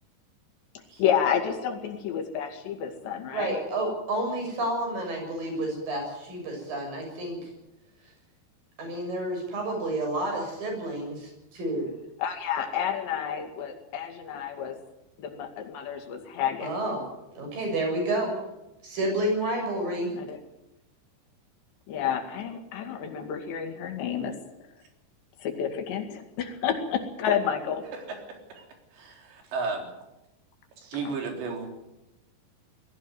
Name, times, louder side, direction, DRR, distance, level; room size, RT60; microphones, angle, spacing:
voice 1, 1.0-3.6 12.2-14.8 15.2-16.7 20.1-20.4 21.9-24.4 25.4-27.9, left 8 dB, 80° left, 5 dB, 4.5 m, -30 dB
voice 2, 3.3-7.4 8.8-11.9 16.6-17.1 17.3-18.4 18.8-20.1, right 1 dB, 55° right, 2 dB, 8.4 m, -30 dB
voice 3, 28.9-29.9 30.8-31.7, right 4 dB, 80° right, 3 dB, 5.8 m, -33 dB
21.0 x 14.5 x 9.4 m, 0.93 s
omnidirectional pair, 4.9 m